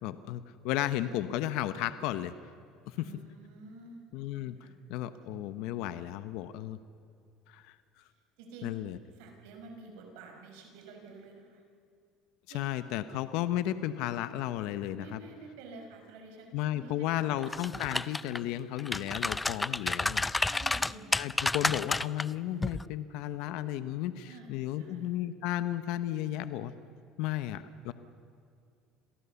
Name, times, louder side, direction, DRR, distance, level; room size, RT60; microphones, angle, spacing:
voice 1, 0.0-2.3 2.9-3.0 4.1-6.8 7.5-7.8 8.6-9.0 12.5-15.2 16.5-20.3 21.1-26.7 27.2-27.9, left 13 dB, 75° left, 12 dB, 1.0 m, -34 dB
voice 2, 2.9-4.0 4.3-4.8 8.4-8.8 9.2-11.6 12.5-12.6 15.0-16.9 17.2-17.3 20.5-21.1 24.3-25.0, right 3 dB, 85° right, 3 dB, 5.3 m, -49 dB
sound 1, 17.4-18.4 18.8-22.2 22.6-22.8, left 2 dB, 10° left, 0.5 m, -30 dB
27.0 x 18.0 x 7.1 m, 2.4 s
supercardioid pair, 110°, 0 cm